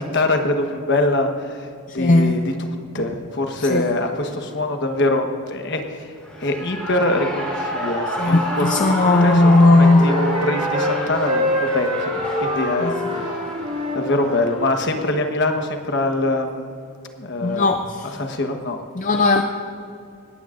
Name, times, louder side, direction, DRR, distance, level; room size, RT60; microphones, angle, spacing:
voice 1, 0.0-13.4 13.9-16.7 17.2-17.7 18.0-18.8, left 2 dB, 50° left, 5 dB, 1.2 m, -24 dB
voice 2, 2.0-2.4 3.6-3.9 8.2-10.1 12.8-12.9 17.4-18.0 19.0-19.4, left 2 dB, 35° left, 6 dB, 0.5 m, -16 dB
Shout / Cheering, 6.2-15.1, equal, 5° left, 3.8 m, -29 dB
Wind instrument woodwind instrument, 8.1-11.0 11.2-14.5, left 1 dB, 30° right, 2.7 m, -26 dB
19.0 x 17.5 x 2.5 m, 2.6 s
head